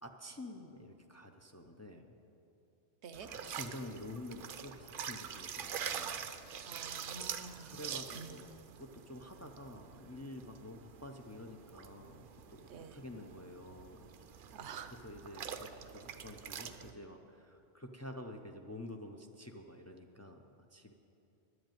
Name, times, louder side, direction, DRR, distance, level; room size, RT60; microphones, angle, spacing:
voice 1, 0.0-2.2 3.2-6.8 7.4-8.5 8.7-14.1 14.5-14.6 15.0-20.4 20.7-20.9, left 1 dB, 25° left, 3 dB, 0.4 m, -49 dB
sound 1, 3.1-16.9, right 7 dB, 60° right, 0.7 m, -45 dB
voice 2, 6.6-7.8 8.1-8.4 12.7-13.0 14.5-15.0, right 6 dB, 80° right, 9 dB, 1.0 m, -48 dB
10.5 x 8.0 x 9.0 m, 2.8 s
omnidirectional pair, 1.1 m